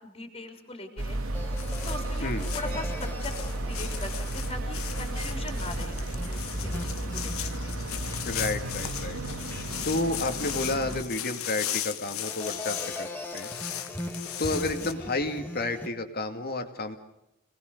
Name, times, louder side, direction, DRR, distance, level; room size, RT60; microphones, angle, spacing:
voice 1, 0.0-1.2 1.9-3.4 3.7-7.8, left 2 dB, 25° left, 4 dB, 3.9 m, -41 dB
sound 1, 1.0-11.0, right 1 dB, 75° right, 3.1 m, -33 dB
sound 2, 1.3-9.1 9.4-10.0 10.4-15.9, left 1 dB, 10° left, 2.8 m, -41 dB
sound 3, 1.6-14.9, left 11 dB, 75° left, 1.4 m, -37 dB
voice 2, 8.2-9.2 9.8-13.5 14.4-17.0, left 2 dB, 45° left, 7 dB, 2.3 m, -31 dB
28.0 x 20.0 x 6.7 m, 0.89 s
head